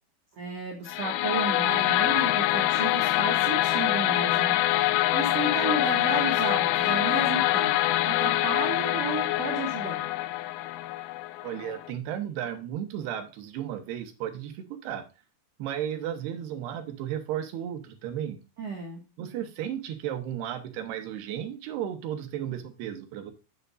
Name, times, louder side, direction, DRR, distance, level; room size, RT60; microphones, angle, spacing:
voice 1, 0.4-7.7 8.1-10.0 18.6-19.0, right 3 dB, 50° right, -1 dB, 2.4 m, -33 dB
sound 1, 0.9-11.9, left 16 dB, 80° left, 2.2 m, -25 dB
voice 2, 11.4-15.0 15.6-18.4 19.2-23.3, right 10 dB, 90° right, 7 dB, 3.3 m, -34 dB
9.3 x 7.5 x 2.5 m, 0.30 s
omnidirectional pair, 4.6 m